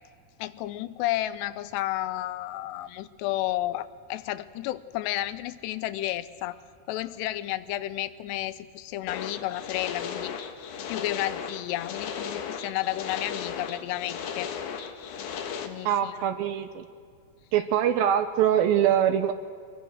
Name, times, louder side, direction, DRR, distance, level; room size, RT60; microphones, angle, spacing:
voice 1, 0.4-6.6 6.9-10.4 10.9-14.5 15.6-16.2, left 15 dB, 90° left, 14 dB, 2.9 m, -32 dB
sound 1, 9.1-15.7, left 7 dB, 60° left, 2.3 m, -36 dB
voice 2, 15.9-16.9 17.5-19.3, right 10 dB, 75° right, 10 dB, 2.3 m, -23 dB
25.0 x 21.5 x 6.4 m, 2.2 s
omnidirectional pair, 4.8 m